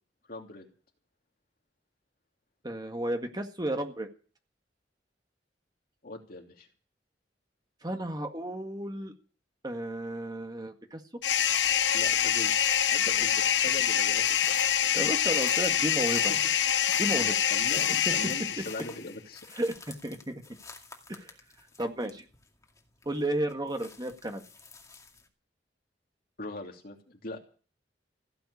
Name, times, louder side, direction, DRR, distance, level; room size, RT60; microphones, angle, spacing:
voice 1, 0.3-0.7 6.0-6.7 11.9-14.9 16.3-16.4 17.1-19.4 26.4-27.4, left 2 dB, 55° left, 2 dB, 2.9 m, -41 dB
voice 2, 2.6-4.1 7.8-9.1 9.6-11.0 14.9-16.3 16.9-17.4 18.1-18.2 18.4-18.5 19.6-20.4 21.1-21.3 21.8-22.2 23.1-24.4, right 1 dB, 25° right, 5 dB, 1.8 m, -33 dB
sound 1, 11.2-19.0, left 9 dB, 80° left, 0.9 m, -26 dB
sound 2, 11.5-25.3, left 4 dB, 20° left, 2.2 m, -50 dB
16.0 x 7.8 x 9.9 m, 0.39 s
head